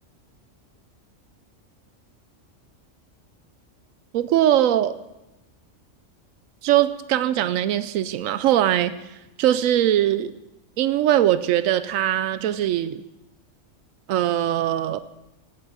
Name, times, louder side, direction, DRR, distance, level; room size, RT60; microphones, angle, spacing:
voice 1, 4.1-4.9 6.6-8.9 9.4-10.3 10.8-13.0 14.1-15.0, right 12 dB, 90° right, 14 dB, 1.0 m, -21 dB
17.0 x 8.7 x 4.9 m, 1.0 s
omnidirectional pair, 1.3 m